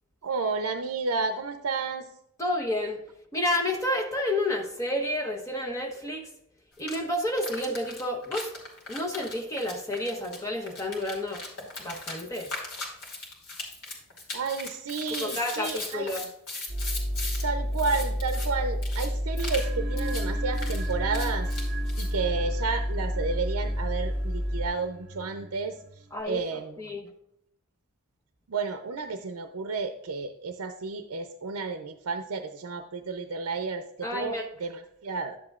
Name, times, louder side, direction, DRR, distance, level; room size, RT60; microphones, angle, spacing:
voice 1, 0.2-2.0 14.3-16.1 17.4-21.5 22.0-25.8 26.3-26.8 28.5-33.9 34.1-35.4, right 4 dB, 80° right, 7 dB, 0.6 m, -31 dB
voice 2, 2.4-3.0 3.3-6.3 6.8-8.5 8.9-11.4 11.8-12.5 15.2-16.3 26.1-27.1 34.0-34.5, left 1 dB, 15° left, 2 dB, 0.9 m, -30 dB
sound 1, 6.8-7.0 7.4-17.4 17.7-18.5 18.8-19.1 19.4-19.7 20.0-20.2 20.5-22.1, left 3 dB, 85° left, 2.7 m, -38 dB
sound 2, 16.7-24.7, equal, 50° left, 3.6 m, -29 dB
sound 3, 19.3-26.2, right 2 dB, 45° right, 0.9 m, -42 dB
11.0 x 7.7 x 2.4 m, 0.80 s
head